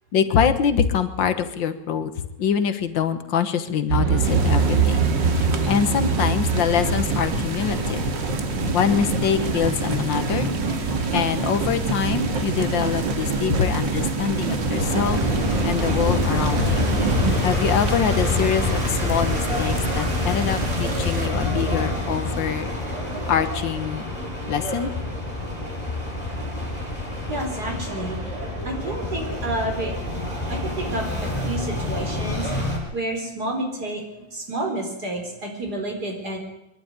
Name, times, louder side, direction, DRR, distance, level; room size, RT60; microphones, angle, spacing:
voice 1, 0.1-2.1 2.4-5.0 5.4-8.1 8.7-10.5 11.1-15.2 15.6-16.9 17.4-22.7 23.3-24.0 24.5-24.9, left 7 dB, 80° left, 11 dB, 2.0 m, -24 dB
sound 1, 3.9-17.4, right 3 dB, 75° right, 3.0 m, -24 dB
sound 2, 4.2-21.3, right 5 dB, 40° right, 1.4 m, -33 dB
sound 3, 14.8-32.8, left 2 dB, 5° left, 7.9 m, -26 dB
voice 2, 27.3-28.4 28.6-29.9 30.5-32.5 32.9-34.0 34.3-36.4, right 1 dB, 55° right, 2 dB, 5.0 m, -30 dB
23.0 x 11.5 x 9.7 m, 0.88 s
omnidirectional pair, 2.0 m